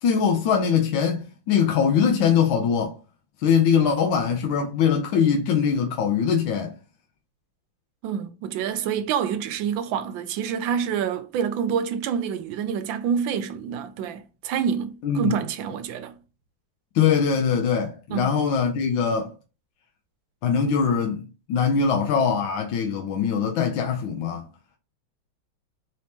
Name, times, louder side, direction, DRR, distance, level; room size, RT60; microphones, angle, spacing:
voice 1, 0.0-3.0 3.4-6.7 15.0-15.4 16.9-19.3 20.4-24.5, left 6 dB, 80° left, 1.3 m, -22 dB
voice 2, 8.0-16.1 18.1-18.3, right 7 dB, 80° right, 1.3 m, -27 dB
4.1 x 2.8 x 3.3 m
omnidirectional pair, 2.1 m